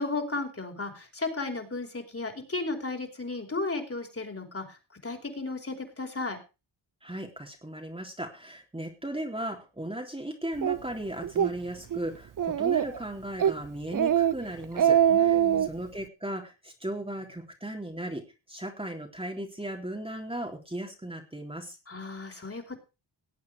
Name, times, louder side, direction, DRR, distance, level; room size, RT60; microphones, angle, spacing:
voice 1, 0.0-6.4 15.1-15.7 21.9-22.8, left 3 dB, 30° left, 4 dB, 4.9 m, -34 dB
voice 2, 7.0-15.4 15.7-21.8, right 1 dB, 10° right, 2 dB, 3.6 m, -37 dB
Speech, 10.6-10.8 11.2-11.5 11.9-12.0 12.4-13.0 13.4-13.6 13.9-14.3 14.6-15.7, right 9 dB, 45° right, 0.6 m, -23 dB
19.0 x 8.4 x 4.9 m, 0.31 s
cardioid pair, 70°, 46 cm